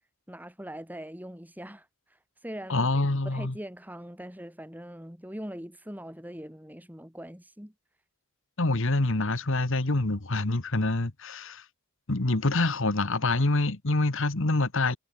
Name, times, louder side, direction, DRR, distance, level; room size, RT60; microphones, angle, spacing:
voice 1, 0.3-2.9 3.3-7.7, equal, 10° right, 5.4 m, -42 dB
voice 2, 2.7-3.5 8.6-11.6 12.1-15.0, left 2 dB, 60° left, 1.5 m, -26 dB
head